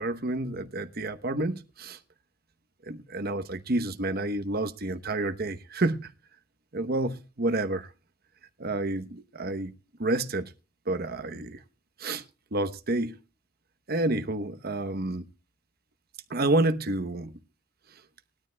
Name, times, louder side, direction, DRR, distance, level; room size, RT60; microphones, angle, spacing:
voice 1, 0.0-2.0 2.8-6.1 6.7-7.9 8.6-9.7 10.0-10.5 10.9-11.6 12.0-12.2 12.5-13.2 13.9-15.3 16.3-17.3 17.9-18.0, right 2 dB, 45° right, 0.9 m, -29 dB
20.0 x 12.5 x 2.3 m
head